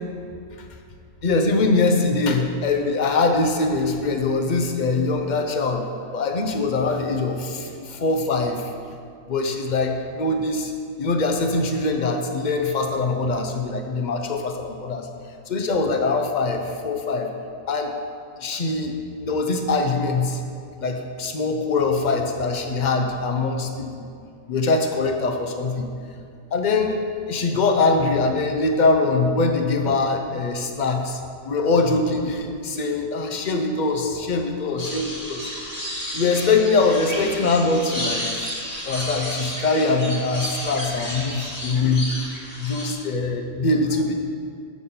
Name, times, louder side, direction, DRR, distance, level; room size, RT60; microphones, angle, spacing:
voice 1, 1.2-5.9 6.1-8.6 9.3-10.7 11.0-15.1 15.5-17.3 17.7-17.9 18.4-18.9 19.2-20.4 20.8-24.1 24.5-25.9 26.5-27.0 27.3-31.2 31.4-35.5 36.1-38.6 38.9-42.3 42.6-44.1, left 3 dB, 45° left, 4 dB, 0.6 m, -23 dB
sound 1, 34.8-42.9, equal, 30° left, 1.5 m, -32 dB
6.2 x 5.4 x 7.0 m, 2.3 s
omnidirectional pair, 1.4 m